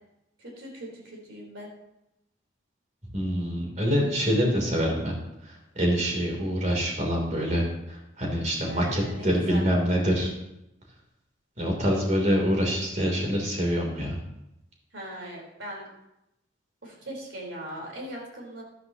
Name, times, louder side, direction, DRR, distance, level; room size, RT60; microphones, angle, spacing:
voice 1, 0.4-1.7 4.3-4.6 8.6-9.7 14.9-15.9 16.8-18.6, equal, 70° right, -2 dB, 4.3 m, -40 dB
voice 2, 3.1-5.1 5.8-10.3 11.6-14.2, equal, 40° right, 0 dB, 3.3 m, -25 dB
13.0 x 12.5 x 3.0 m, 0.85 s
head